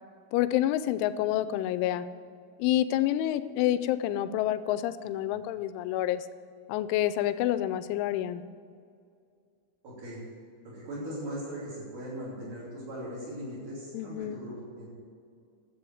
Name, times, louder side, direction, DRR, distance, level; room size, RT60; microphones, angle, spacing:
voice 1, 0.3-2.1 2.6-6.3 6.7-8.4 13.9-14.5, left 13 dB, 85° left, 12 dB, 3.0 m, -28 dB
voice 2, 9.8-10.2 10.6-14.9, equal, 45° right, -10 dB, 4.4 m, -39 dB
11.5 x 8.1 x 7.8 m, 2.3 s
omnidirectional pair, 5.5 m